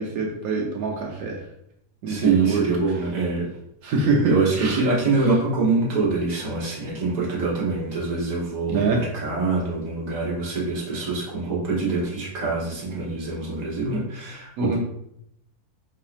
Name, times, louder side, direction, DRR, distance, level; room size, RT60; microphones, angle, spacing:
voice 1, 0.0-1.4 2.0-2.6 3.8-4.8 8.7-9.0 14.6-14.8, right 3 dB, 80° right, 0 dB, 1.0 m, -24 dB
voice 2, 2.0-3.5 4.3-14.8, right 3 dB, 30° right, -5 dB, 1.0 m, -24 dB
4.1 x 2.8 x 2.4 m, 0.75 s
omnidirectional pair, 1.6 m